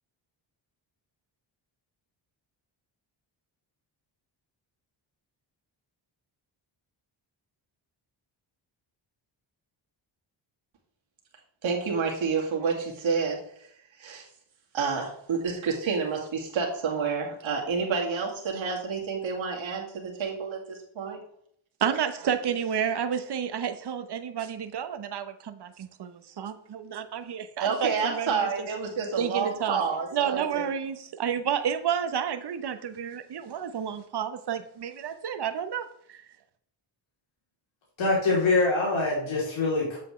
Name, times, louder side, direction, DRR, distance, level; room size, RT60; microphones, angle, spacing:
voice 1, 11.6-13.4 14.0-14.3 14.7-21.2 27.6-30.7, right 5 dB, 75° right, -1 dB, 2.3 m, -29 dB
voice 2, 21.8-28.7 29.2-29.8 30.1-36.2, right 8 dB, 55° right, 9 dB, 1.0 m, -30 dB
voice 3, 38.0-40.0, left 3 dB, 75° left, -5 dB, 3.3 m, -24 dB
7.7 x 7.5 x 3.2 m, 0.68 s
cardioid pair, 70°, 48 cm